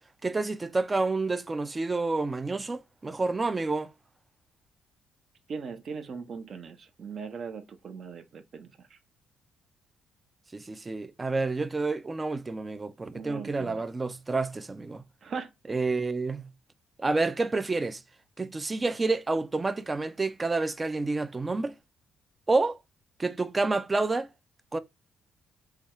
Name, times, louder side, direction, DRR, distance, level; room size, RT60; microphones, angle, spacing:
voice 1, 0.2-3.9 10.5-15.0 15.7-16.5 17.0-18.0 18.4-21.7 22.5-22.8 23.2-24.3 24.7-24.8, right 3 dB, 25° right, 0.4 m, -29 dB
voice 2, 5.5-8.7 13.1-13.8 15.2-15.5, right 5 dB, 55° right, 0.7 m, -39 dB
3.4 x 2.3 x 2.9 m
cardioid pair, 90°, 0 cm